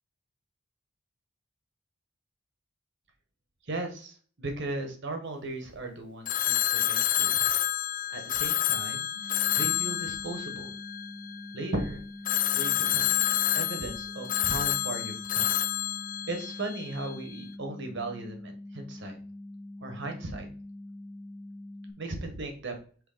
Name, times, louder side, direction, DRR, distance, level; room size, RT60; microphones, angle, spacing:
voice 1, 3.6-7.5 8.1-10.7 11.5-12.0 12.5-13.3 13.5-15.5 16.3-19.2 19.8-20.5 22.0-22.7, right 2 dB, 60° right, 5 dB, 1.4 m, -37 dB
Telephone, 6.3-11.5 12.3-17.1, left 13 dB, 40° left, 0.3 m, -28 dB
sound 1, 9.2-21.9, left 1 dB, 20° left, 1.2 m, -44 dB
6.4 x 3.2 x 5.0 m, 0.42 s
head